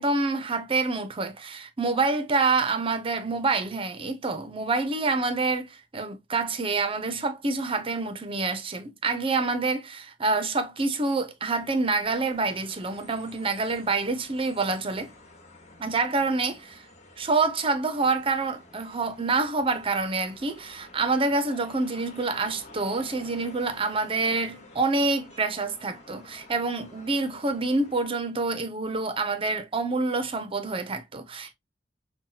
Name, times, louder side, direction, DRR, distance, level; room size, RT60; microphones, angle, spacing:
voice 1, 0.0-15.1 15.8-16.8 17.2-31.5, right 3 dB, 30° right, 0.6 m, -27 dB
sound 1, 11.6-28.0, left 2 dB, 40° left, 1.3 m, -51 dB
5.5 x 2.2 x 2.7 m
head